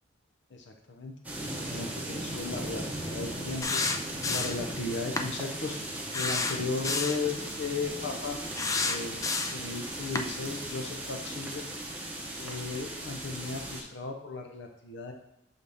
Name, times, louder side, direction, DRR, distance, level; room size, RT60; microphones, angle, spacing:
voice 1, 0.5-5.8 6.1-8.4 8.8-11.7 12.4-15.1, left 3 dB, 65° left, 4 dB, 0.6 m, -36 dB
sound 1, 1.2-13.8, right 1 dB, 10° right, 0.8 m, -37 dB
sound 2, 3.6-4.7 5.2-5.3 6.1-7.2 8.6-9.7 10.2-10.3, left 3 dB, 15° left, 0.3 m, -30 dB
6.8 x 4.0 x 3.4 m, 0.79 s
head